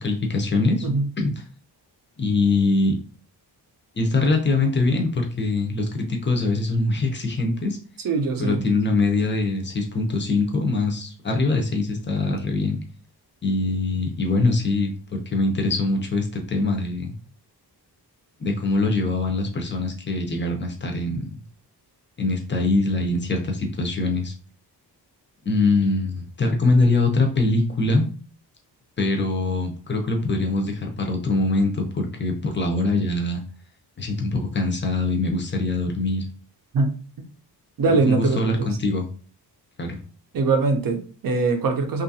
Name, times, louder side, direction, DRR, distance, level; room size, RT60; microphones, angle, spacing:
voice 1, 0.0-0.9 1.2-1.3 2.2-3.0 4.0-7.8 8.4-12.8 13.4-17.1 18.4-21.4 22.2-24.3 25.5-28.1 29.0-33.4 34.0-36.3 37.9-39.1 39.8-40.0, left 2 dB, 30° left, 3 dB, 0.5 m, -23 dB
voice 2, 8.0-8.7 36.7-36.9 37.8-38.7 40.3-42.0, right 4 dB, 55° right, 6 dB, 0.6 m, -22 dB
2.7 x 2.4 x 2.7 m, 0.39 s
wide cardioid pair, 155°, 41 cm